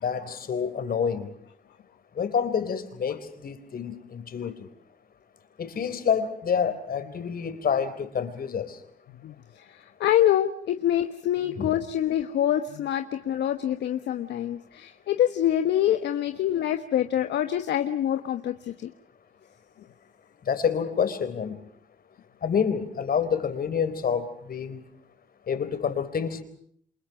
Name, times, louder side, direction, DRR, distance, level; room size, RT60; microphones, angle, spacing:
voice 1, 0.0-1.3 2.2-4.7 5.6-8.8 11.6-11.7 20.5-21.6 22.4-24.8 25.5-26.4, left 7 dB, 55° left, 4.1 m, -28 dB
voice 2, 9.1-18.9, left 11 dB, 75° left, 1.3 m, -26 dB
29.0 x 27.0 x 6.0 m
supercardioid pair, 60°, 18 cm